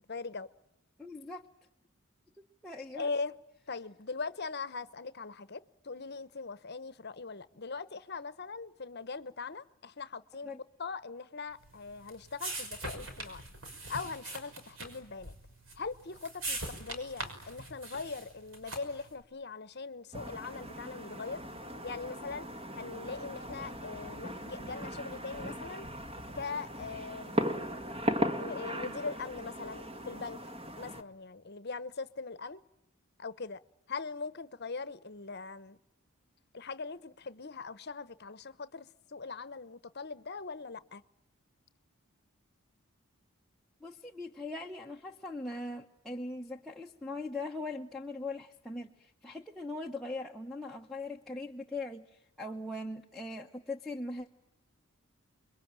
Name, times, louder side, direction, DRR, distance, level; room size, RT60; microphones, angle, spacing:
voice 1, 0.1-0.5 2.9-3.4 3.7-10.5 10.8-13.4 13.9-15.3 15.8-21.4 21.8-22.5 22.8-25.9 26.3-27.5 28.4-30.4 30.7-32.6 33.2-33.6 33.9-35.8 36.5-41.0, left 4 dB, 50° left, 1.0 m, -41 dB
voice 2, 1.0-1.5 2.6-3.1 10.4-10.6 43.8-52.1 52.4-54.3, left 2 dB, ahead, 1.1 m, -40 dB
sound 1, 11.6-19.1, right 2 dB, 65° right, 5.8 m, -42 dB
sound 2, 20.1-31.0, equal, 25° right, 1.7 m, -38 dB
29.0 x 22.0 x 8.9 m
head